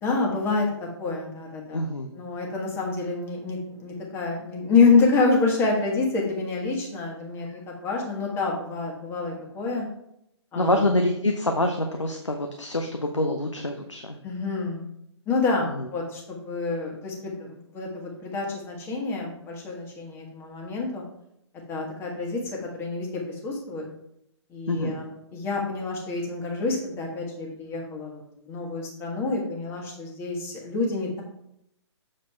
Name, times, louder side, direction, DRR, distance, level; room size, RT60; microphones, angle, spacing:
voice 1, 0.0-1.8 2.1-9.8 10.5-10.8 14.2-14.9 15.3-21.0 21.7-23.8 24.5-31.2, left 4 dB, 15° left, -1 dB, 1.6 m, -27 dB
voice 2, 1.7-2.1 10.5-14.2 24.7-24.9, left 1 dB, 90° left, 4 dB, 0.8 m, -25 dB
7.5 x 4.1 x 4.5 m, 0.77 s
figure-of-eight pair, 130°, 15 cm